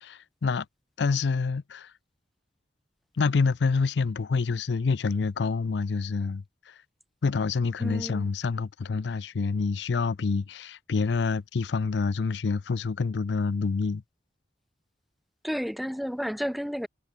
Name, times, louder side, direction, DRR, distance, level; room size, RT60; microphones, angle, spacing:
voice 1, 0.0-0.7 1.0-1.9 3.2-6.4 7.2-14.0, left 4 dB, 80° left, 0.5 m, -27 dB
voice 2, 7.8-8.3 15.4-16.9, equal, ahead, 0.4 m, -31 dB
head